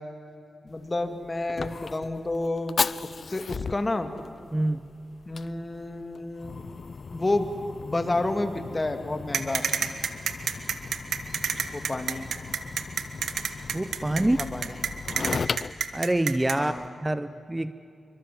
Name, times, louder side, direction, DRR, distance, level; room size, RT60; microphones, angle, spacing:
voice 1, 0.6-2.8 3.0-4.1 5.3-6.6 7.1-7.5 7.8-9.6 11.7-12.3 14.1-14.8 16.5-16.9, left 2 dB, 30° left, 7 dB, 2.5 m, -30 dB
Fire, 0.7-16.9, left 5 dB, 60° left, 0.5 m, -37 dB
sound 1, 9.3-16.6, right 7 dB, 85° right, 1.5 m, -28 dB
voice 2, 13.7-14.4 15.9-16.7 17.0-17.7, right 1 dB, 15° right, 13 dB, 0.8 m, -25 dB
27.5 x 24.0 x 7.8 m, 2.6 s
cardioid pair, 70°, 0 cm